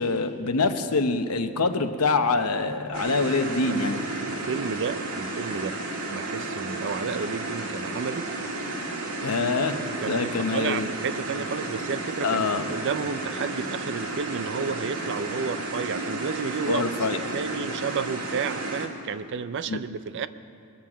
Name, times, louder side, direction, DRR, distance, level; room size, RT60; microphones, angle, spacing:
voice 1, 0.0-4.0 9.2-9.8 10.1-10.9 12.2-12.7 16.7-17.2 19.7-19.8, left 3 dB, 90° left, 8 dB, 0.9 m, -25 dB
sound 1, 2.9-18.9, right 2 dB, 75° right, 1.8 m, -32 dB
voice 2, 3.7-5.8 6.0-8.3 10.0-16.9 17.3-20.3, right 5 dB, 55° right, 14 dB, 0.4 m, -31 dB
21.5 x 7.4 x 7.3 m, 2.4 s
head